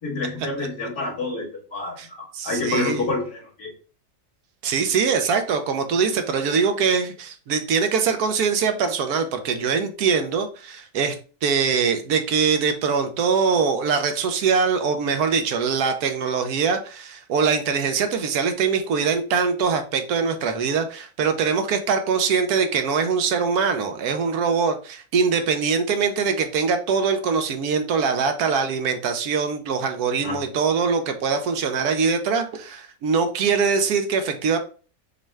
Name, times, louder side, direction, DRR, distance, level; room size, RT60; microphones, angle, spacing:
voice 1, 0.0-3.7 30.2-30.4, left 3 dB, 65° left, -3 dB, 2.3 m, -28 dB
voice 2, 2.3-3.0 4.6-11.1 11.4-34.6, right 5 dB, 80° right, 7 dB, 1.2 m, -23 dB
6.3 x 2.2 x 3.4 m, 0.38 s
omnidirectional pair, 1.7 m